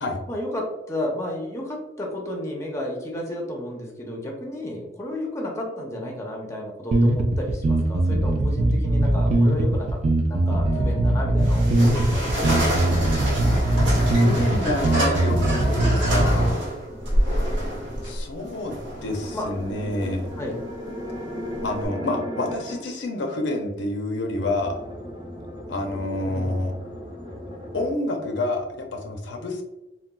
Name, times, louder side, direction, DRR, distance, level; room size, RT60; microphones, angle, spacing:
voice 1, 0.3-10.0 10.3-12.6 19.3-19.5 20.4-20.6 26.2-26.6, left 1 dB, 15° left, 0 dB, 0.5 m, -32 dB
sound 1, 6.9-16.5, right 1 dB, 40° right, 0.3 m, -21 dB
sound 2, 10.6-11.5 13.3-16.0 16.8-18.2 18.8-22.9 24.3-27.9, equal, 25° right, 0.8 m, -36 dB
sound 3, 11.4-21.9, equal, 90° right, 1.2 m, -28 dB
voice 2, 14.1-16.5 18.0-20.3 21.6-24.8 25.7-26.7 27.7-29.6, left 2 dB, 75° left, 3 dB, 0.5 m, -28 dB
3.7 x 2.2 x 2.2 m, 0.93 s
head